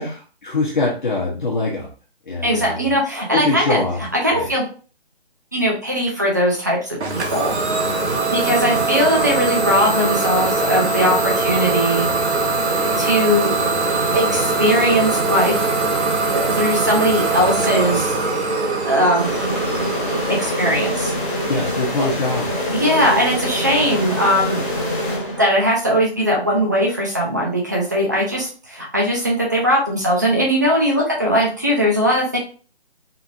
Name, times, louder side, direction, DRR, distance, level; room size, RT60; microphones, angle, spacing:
voice 1, 0.0-1.9 2.3-2.9 3.3-4.0 4.3-4.5 21.5-22.5, left 3 dB, 45° left, -3 dB, 1.1 m, -23 dB
voice 2, 2.4-4.6 5.5-7.5 8.3-12.1 12.8-13.5 14.1-15.7 16.3-18.1 18.8-19.3 20.3-21.1 22.0-22.1 22.7-24.6 25.4-32.4, equal, 15° right, -2 dB, 0.6 m, -19 dB
Idling / Domestic sounds home sounds, 7.0-22.5, right 3 dB, 85° right, 1.2 m, -22 dB
sound 1, 19.1-25.8, equal, 15° left, 1.4 m, -25 dB
4.5 x 3.5 x 2.5 m, 0.37 s
hypercardioid pair, 170°, 33 cm